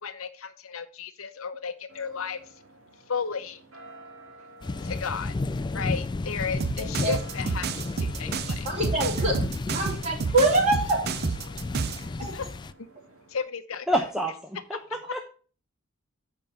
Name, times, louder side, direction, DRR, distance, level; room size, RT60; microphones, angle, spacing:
voice 1, 0.0-2.4 3.1-3.6 4.8-5.3 5.7-7.7 8.0-8.7 12.2-12.5 13.3-13.9, left 6 dB, 75° left, 9 dB, 0.8 m, -33 dB
sound 1, 1.9-13.4, right 2 dB, 75° right, 2.2 m, -51 dB
sound 2, 4.6-12.7, left 3 dB, 20° left, 0.3 m, -33 dB
sound 3, 6.6-12.1, right 5 dB, 50° right, 0.5 m, -30 dB
voice 2, 6.8-7.2 8.6-9.4 9.7-11.1 12.1-12.3, right 2 dB, 35° right, -1 dB, 3.3 m, -25 dB
voice 3, 13.9-15.2, right 1 dB, ahead, 2 dB, 0.8 m, -28 dB
7.6 x 5.2 x 5.6 m, 0.39 s
head